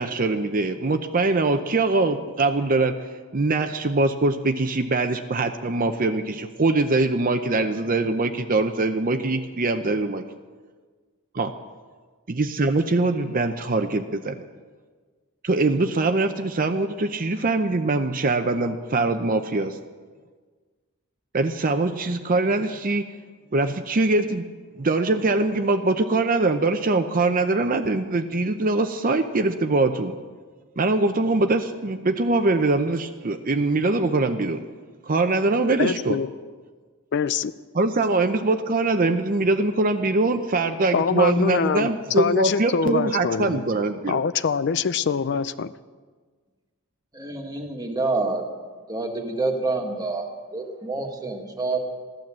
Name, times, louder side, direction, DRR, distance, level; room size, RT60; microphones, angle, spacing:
voice 1, 0.0-2.9 3.3-10.2 11.3-11.5 12.3-14.4 15.4-19.8 21.3-23.1 23.5-24.5 24.8-30.2 30.8-34.6 35.0-36.2 37.7-44.2, right 2 dB, 40° right, 7 dB, 0.7 m, -23 dB
voice 2, 35.8-36.3 37.1-37.5 40.9-41.9 42.2-43.7 44.1-45.7, left 6 dB, 55° left, 14 dB, 0.4 m, -24 dB
voice 3, 47.1-48.4 48.9-51.8, right 3 dB, 20° right, 2 dB, 1.8 m, -27 dB
15.5 x 12.0 x 7.4 m, 1.5 s
head